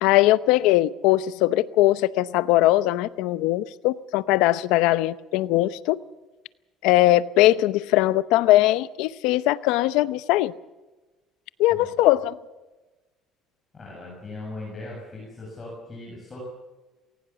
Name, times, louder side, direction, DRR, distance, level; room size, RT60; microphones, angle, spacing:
voice 1, 0.0-6.0 6.8-10.5 11.6-12.4, left 16 dB, 85° left, 15 dB, 0.8 m, -20 dB
voice 2, 13.7-16.4, left 2 dB, 20° left, -3 dB, 7.1 m, -39 dB
21.0 x 18.5 x 7.0 m, 1.2 s
cardioid pair, 145°, 0 cm